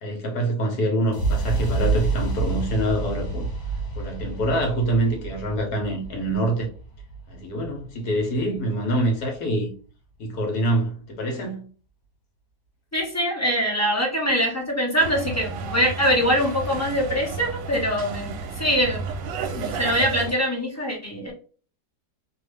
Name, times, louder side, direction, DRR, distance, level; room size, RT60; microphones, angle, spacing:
voice 1, 0.0-3.5 4.0-6.7 7.3-9.7 10.2-11.7, right 1 dB, 70° left, 1.5 m, -25 dB
sound 1, 1.1-9.1, right 3 dB, 45° left, 1.0 m, -29 dB
voice 2, 12.9-19.0 19.5-21.3, equal, 20° left, 0.4 m, -23 dB
sound 2, 15.0-20.3, right 4 dB, 65° right, 0.9 m, -32 dB
3.1 x 2.3 x 3.2 m
omnidirectional pair, 1.7 m